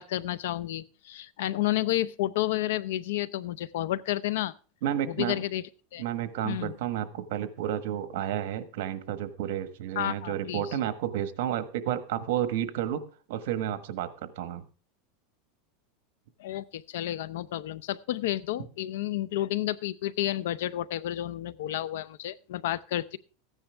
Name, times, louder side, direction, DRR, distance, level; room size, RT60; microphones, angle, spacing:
voice 1, 0.0-4.5 5.1-5.6 5.9-6.0 6.4-6.7 10.0-10.6 16.4-23.2, left 14 dB, 80° left, 18 dB, 0.6 m, -31 dB
voice 2, 4.8-5.4 6.0-13.0 13.3-14.6, right 11 dB, 70° right, 11 dB, 1.3 m, -31 dB
14.5 x 9.9 x 3.4 m, 0.38 s
supercardioid pair, 145°, 0 cm